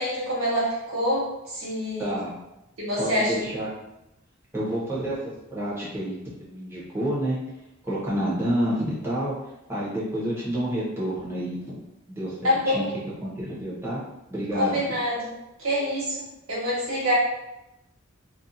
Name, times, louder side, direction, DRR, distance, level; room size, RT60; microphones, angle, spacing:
voice 1, 0.0-2.2 2.8-3.3 12.4-12.9 14.5-15.3 15.6-16.2 16.5-17.2, left 1 dB, 75° right, -5 dB, 1.1 m, -26 dB
voice 2, 2.0-2.3 3.0-3.7 4.5-7.4 7.8-11.8 12.1-12.9 13.2-14.0 14.3-14.8, right 1 dB, 10° right, -7 dB, 0.9 m, -29 dB
2.5 x 2.4 x 2.7 m, 0.90 s
head